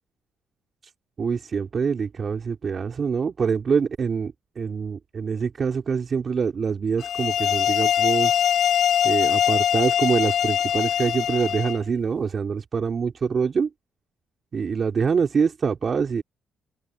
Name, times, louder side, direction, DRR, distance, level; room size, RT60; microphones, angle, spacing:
voice 1, 1.2-8.4 9.0-13.7 14.5-16.2, right 6 dB, 45° right, 4.3 m, -25 dB
sound 1, 7.0-11.8, left 9 dB, 70° left, 3.8 m, -22 dB
cardioid pair, 90°, 0 cm